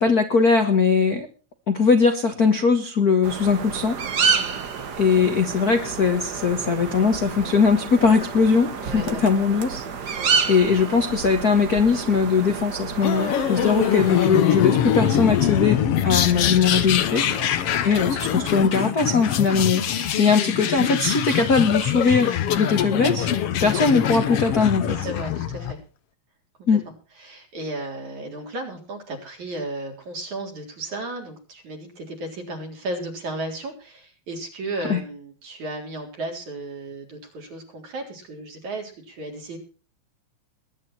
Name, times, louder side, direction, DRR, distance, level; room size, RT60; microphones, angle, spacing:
voice 1, 0.0-1.3 1.7-4.0 5.0-10.2 10.5-15.8 16.0-17.3 17.8-23.3 23.6-25.0 26.7-26.8 34.9-35.0, left 5 dB, 50° left, 6 dB, 1.1 m, -20 dB
sound 1, 3.2-14.3, right 6 dB, 85° right, 0.9 m, -29 dB
voice 2, 8.8-9.2 10.2-10.3 13.1-13.5 17.3-17.5 24.9-25.8 26.7-26.8 27.2-39.6, right 2 dB, 50° right, 2 dB, 5.0 m, -34 dB
sound 2, 13.0-25.7, left 9 dB, 70° left, 1.4 m, -23 dB
21.5 x 10.0 x 4.4 m, 0.36 s
omnidirectional pair, 4.2 m